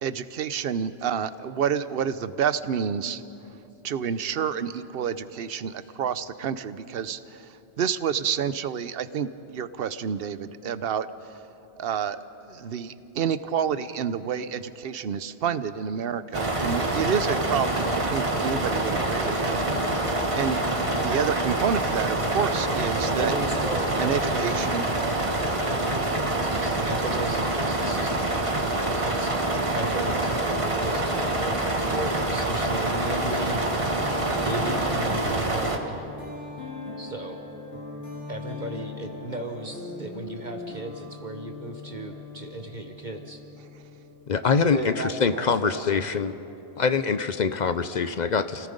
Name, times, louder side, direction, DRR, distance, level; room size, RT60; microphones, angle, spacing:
voice 1, 0.0-3.2 3.8-11.1 11.8-20.0 20.3-23.3 24.0-24.8, right 7 dB, 65° right, 14 dB, 0.9 m, -29 dB
sound 1, 16.3-35.8, right 2 dB, 30° right, 1.5 m, -26 dB
voice 2, 23.2-29.4 29.7-34.0 34.4-36.0 37.0-37.4 38.3-43.4 44.7-46.1, right 2 dB, 45° right, 4 dB, 1.2 m, -36 dB
sound 2, 33.9-44.5, left 3 dB, 75° left, 3.5 m, -40 dB
voice 3, 44.3-46.3 46.8-48.7, left 5 dB, 50° left, 11 dB, 0.7 m, -24 dB
28.5 x 17.5 x 5.2 m, 2.9 s
omnidirectional pair, 1.0 m